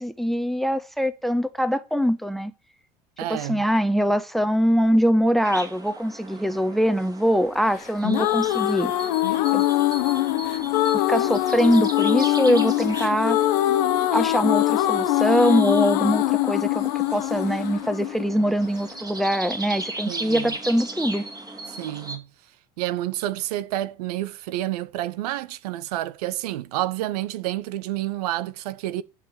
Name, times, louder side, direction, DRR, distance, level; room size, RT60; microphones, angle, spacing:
voice 1, 0.0-2.5 3.3-8.9 9.5-9.6 10.9-13.4 14.1-21.3, equal, ahead, 1.0 m, -23 dB
voice 2, 3.2-3.6 20.1-20.5 21.7-22.3 22.8-29.0, right 14 dB, 70° right, 0.8 m, -29 dB
sound 1, 5.4-22.2, right 2 dB, 20° right, 2.8 m, -38 dB
sound 2, 7.8-18.8, left 15 dB, 70° left, 1.0 m, -23 dB
12.0 x 4.9 x 7.5 m
hypercardioid pair, 75°, 21 cm